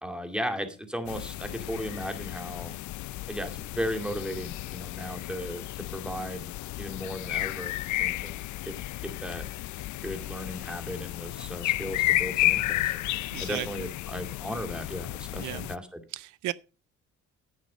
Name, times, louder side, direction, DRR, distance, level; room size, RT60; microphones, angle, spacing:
voice 1, 0.0-2.8 3.3-5.6 5.9-6.5 6.8-8.8 9.0-9.5 10.0-13.0 13.4-15.9, equal, 5° right, 2.4 m, -36 dB
sound 1, 1.1-15.8, left 17 dB, 75° left, 0.5 m, -32 dB
voice 2, 13.3-13.9 15.3-15.7 16.1-16.5, right 17 dB, 85° right, 0.5 m, -35 dB
10.5 x 9.0 x 5.1 m
cardioid pair, 90°, 30 cm